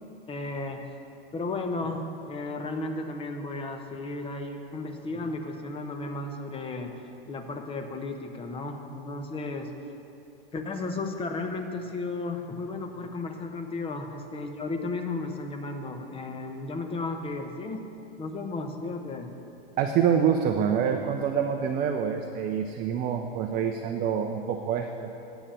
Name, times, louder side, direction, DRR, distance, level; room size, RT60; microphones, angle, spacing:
voice 1, 0.3-0.8 1.3-6.9 7.3-9.7 10.5-17.8 18.2-19.3, left 3 dB, 20° left, 5 dB, 1.0 m, -34 dB
voice 2, 19.8-25.1, right 8 dB, 30° right, 4 dB, 0.6 m, -26 dB
9.9 x 7.0 x 7.5 m, 2.8 s
hypercardioid pair, 100°, 30 cm